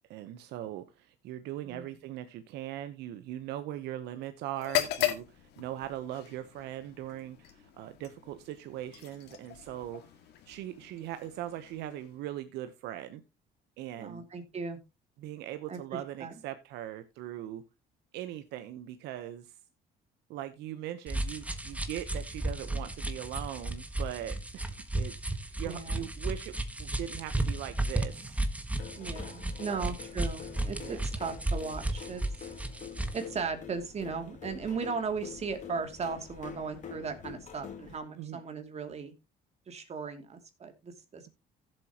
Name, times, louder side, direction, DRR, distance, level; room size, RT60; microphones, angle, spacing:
voice 1, 0.1-10.0 10.5-13.2 13.8-14.2 15.2-17.6 18.1-19.6 20.3-26.5 26.8-28.4 29.7-29.9 30.7-31.0 38.2-38.4, right 12 dB, 85° right, 10 dB, 0.9 m, -40 dB
sound 1, 4.5-12.4, left 13 dB, 80° left, 2.0 m, -38 dB
voice 2, 14.0-14.8 15.7-15.8 16.2-16.4 25.6-26.0 29.0-32.2 33.1-39.1 39.7-41.3, right 5 dB, 40° right, 6 dB, 2.6 m, -37 dB
sound 2, 21.1-33.3, right 1 dB, 10° right, 1.4 m, -34 dB
sound 3, 28.8-38.0, left 7 dB, 45° left, 2.3 m, -46 dB
16.0 x 7.6 x 2.9 m, 0.25 s
cardioid pair, 110°, 17 cm